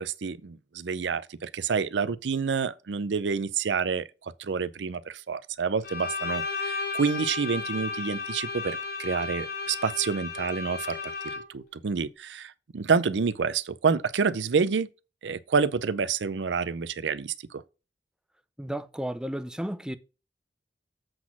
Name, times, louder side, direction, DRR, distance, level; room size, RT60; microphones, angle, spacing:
voice 1, 0.0-4.0 4.4-11.0 11.5-14.9 15.2-17.3, right 5 dB, 90° right, 0.5 m, -28 dB
Bowed string instrument, 5.8-11.7, left 4 dB, 60° left, 5.1 m, -34 dB
voice 2, 18.6-20.0, right 1 dB, 5° right, 0.5 m, -33 dB
7.8 x 4.1 x 5.9 m
head